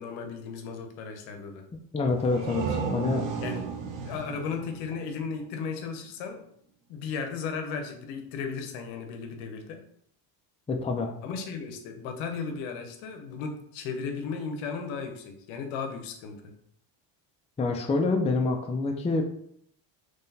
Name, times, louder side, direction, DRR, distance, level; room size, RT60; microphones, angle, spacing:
voice 1, 0.0-1.6 3.4-3.7 4.0-6.4 6.9-9.8 11.2-16.5, left 5 dB, 85° left, 5 dB, 0.8 m, -35 dB
voice 2, 1.9-3.2 10.7-11.1 17.6-19.2, left 3 dB, 15° left, 3 dB, 0.5 m, -26 dB
sound 1, 2.1-5.7, right 5 dB, 90° right, 0.8 m, -34 dB
3.7 x 3.2 x 2.7 m, 0.68 s
supercardioid pair, 80°, 47 cm